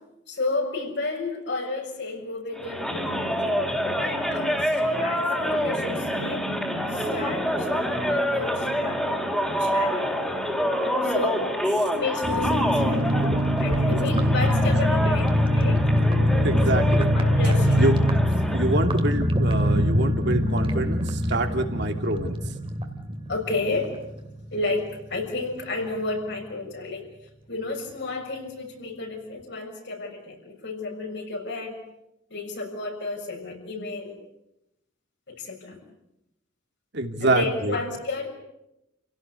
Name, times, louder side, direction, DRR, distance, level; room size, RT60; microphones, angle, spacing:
voice 1, 0.3-3.4 3.9-6.5 6.9-9.1 9.4-10.4 10.9-11.4 11.9-13.1 13.6-15.8 16.3-16.7 17.1-17.9 23.3-23.9 24.5-27.0 27.5-31.8 32.3-34.2 35.3-35.8 37.2-38.3, left 3 dB, 60° left, 2 dB, 6.6 m, -32 dB
sound 1, 2.5-18.8, equal, 5° left, 3.5 m, -27 dB
sound 2, 12.2-24.6 24.9-25.0 25.2-25.5, equal, 30° right, 2.4 m, -23 dB
voice 2, 16.4-17.1 17.7-18.0 18.5-22.4 36.9-37.7, right 2 dB, 60° right, 5 dB, 2.7 m, -26 dB
29.5 x 17.0 x 8.4 m, 0.86 s
head